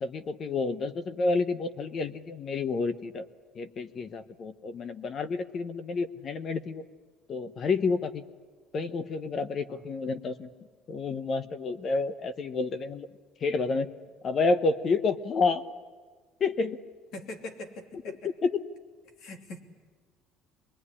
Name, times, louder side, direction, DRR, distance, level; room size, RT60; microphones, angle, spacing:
voice 1, 0.0-3.2 3.5-6.8 7.3-8.2 8.7-10.5 10.9-13.1 13.4-13.9 14.2-15.6 16.4-16.8 18.4-18.5, left 4 dB, 30° left, 13 dB, 1.0 m, -29 dB
voice 2, 17.1-18.3 19.2-19.6, left 2 dB, 55° left, 5 dB, 3.1 m, -42 dB
26.0 x 21.0 x 9.9 m, 1.5 s
cardioid pair, 170°, 0 cm